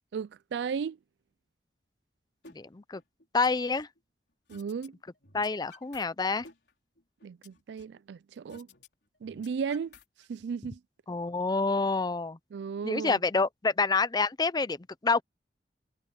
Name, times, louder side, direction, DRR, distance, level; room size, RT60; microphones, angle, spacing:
voice 1, 0.1-1.0 4.5-4.9 7.2-8.7 9.2-9.9 10.3-10.8 12.5-13.2, right 6 dB, 70° right, 0.3 m, -35 dB
sound 1, 2.4-2.6 2.9-4.0 4.5-4.9 5.2-6.0 6.4-8.0 8.5-8.9 9.2-10.4, left 3 dB, 65° left, 4.7 m, -54 dB
voice 2, 2.5-3.0 3.3-3.9 5.3-6.5 11.1-12.4 12.8-14.8 15.0-15.2, left 4 dB, 25° left, 0.5 m, -27 dB
head